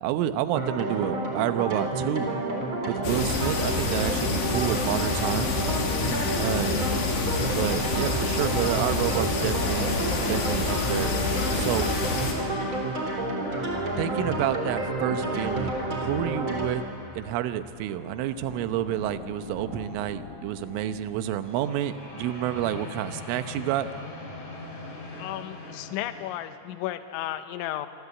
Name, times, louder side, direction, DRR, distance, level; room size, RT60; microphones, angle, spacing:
voice 1, 0.0-2.3 2.8-5.6 6.4-6.9 7.5-11.2 11.5-11.9 14.0-16.8 17.2-23.9, right 12 dB, 80° right, 10 dB, 3.4 m, -29 dB
sound 1, 0.5-16.7, right 2 dB, 25° right, 4.2 m, -30 dB
sound 2, 3.0-12.3, left 3 dB, 55° left, 4.8 m, -28 dB
sound 3, 9.3-26.3, left 2 dB, 40° left, 5.3 m, -41 dB
voice 2, 25.2-27.9, left 13 dB, 75° left, 9 dB, 3.2 m, -33 dB
26.5 x 26.0 x 8.3 m, 2.4 s
omnidirectional pair, 5.8 m